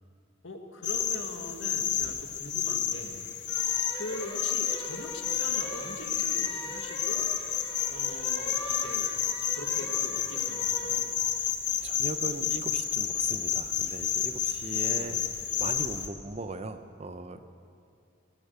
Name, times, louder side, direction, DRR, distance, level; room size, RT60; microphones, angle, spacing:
voice 1, 0.4-3.3 3.6-7.3 7.9-9.1 9.5-11.1 14.8-15.3 17.3-17.4, left 2 dB, 80° left, 4 dB, 1.6 m, -42 dB
sound 1, 0.8-16.1, left 9 dB, 60° left, 1.1 m, -30 dB
sound 2, 3.5-11.0, left 1 dB, 20° left, 3.9 m, -42 dB
voice 2, 11.8-15.2 15.6-17.4, right 2 dB, 35° right, 10 dB, 0.7 m, -39 dB
20.0 x 10.0 x 6.8 m, 2.5 s
head